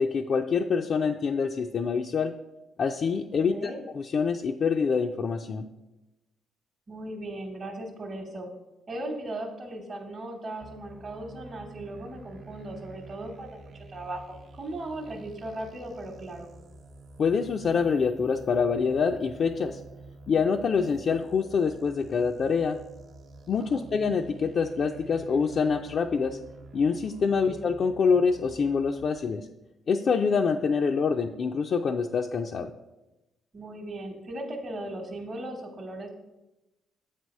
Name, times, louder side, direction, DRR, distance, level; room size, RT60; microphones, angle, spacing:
voice 1, 0.0-2.3 2.8-3.7 4.0-5.7 17.2-19.8 20.3-22.8 23.5-26.4 26.7-29.5 29.9-32.7, left 5 dB, 55° left, 3 dB, 0.3 m, -26 dB
voice 2, 3.3-3.8 6.9-8.5 8.9-16.5 23.7-23.8 27.4-27.7 33.5-36.1, right 1 dB, 40° right, 0 dB, 0.9 m, -38 dB
sound 1, 10.6-29.2, right 2 dB, 60° right, 0.5 m, -48 dB
7.3 x 3.4 x 5.3 m, 1.0 s
cardioid pair, 90°, 0 cm